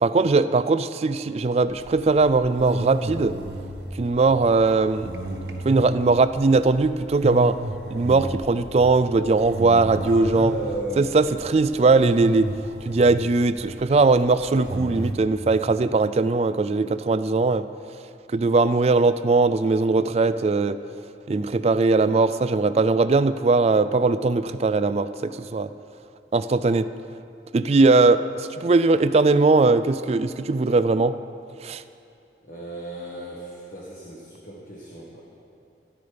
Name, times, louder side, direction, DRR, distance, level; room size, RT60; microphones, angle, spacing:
voice 1, 0.0-3.3 4.0-5.1 5.6-7.6 7.9-10.5 11.0-12.5 12.9-17.7 18.3-20.8 21.3-25.7 26.3-26.9 27.5-31.1 31.6-31.8, right 3 dB, 35° right, 13 dB, 0.3 m, -20 dB
sound 1, 1.7-15.1, right 1 dB, 65° right, 1.0 m, -33 dB
voice 2, 10.0-12.0 16.7-17.0 32.4-35.2, right 1 dB, 50° left, -4 dB, 1.5 m, -35 dB
13.5 x 11.5 x 5.1 m, 2.6 s
head